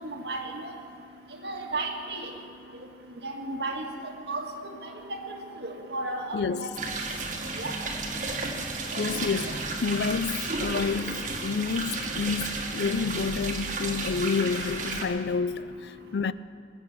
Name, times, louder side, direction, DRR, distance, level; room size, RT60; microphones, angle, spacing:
voice 1, 0.0-0.7 1.4-2.3 3.2-4.4 4.8-6.7 7.6-7.7 8.9-9.1, right 2 dB, 70° right, 1.8 m, -34 dB
voice 2, 6.3-6.8 8.2-8.3 9.0-16.3, left 5 dB, 70° left, 0.4 m, -29 dB
sound 1, 6.8-15.1, right 3 dB, 45° right, 1.6 m, -32 dB
20.0 x 8.7 x 7.1 m
head